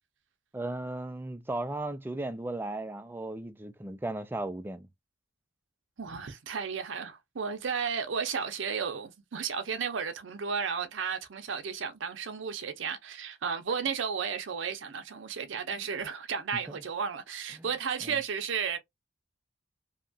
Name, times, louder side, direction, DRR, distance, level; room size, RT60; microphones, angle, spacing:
voice 1, 0.5-4.9 16.7-16.8 17.5-17.7 18.0-18.1, right 2 dB, 10° right, 0.3 m, -36 dB
voice 2, 6.0-18.8, right 6 dB, 65° right, 0.5 m, -33 dB
2.8 x 2.3 x 2.5 m
head